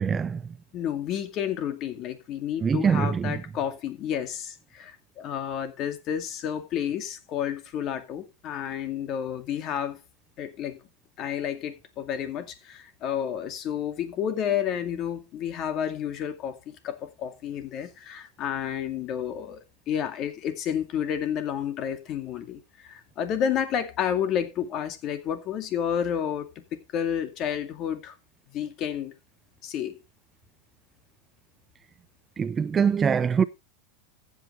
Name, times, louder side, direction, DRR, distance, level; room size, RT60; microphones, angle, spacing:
voice 1, 0.0-0.5 2.6-3.4 32.4-33.4, right 6 dB, 20° right, 0.5 m, -24 dB
voice 2, 0.7-10.0 10.4-10.8 11.2-16.6 16.8-28.2 28.5-29.1 29.6-30.0, left 9 dB, 40° left, 2.3 m, -30 dB
14.5 x 8.3 x 3.3 m
supercardioid pair, 130°, 0 cm